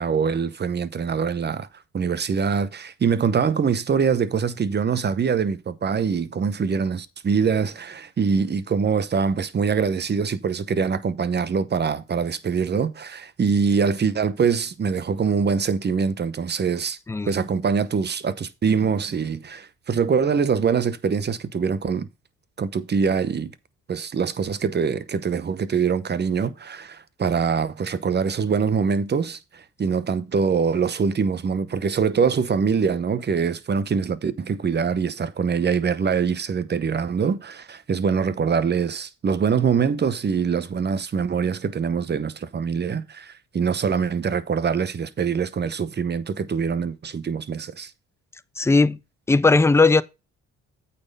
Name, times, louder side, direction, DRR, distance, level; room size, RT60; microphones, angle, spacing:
voice 1, 0.0-1.7 1.9-17.0 17.3-22.1 22.6-23.5 23.9-47.9, right 6 dB, 35° right, 0.9 m, -24 dB
voice 2, 48.6-49.0 49.3-50.0, left 3 dB, 10° left, 0.4 m, -17 dB
8.6 x 4.2 x 5.4 m
cardioid pair, 90°, 30 cm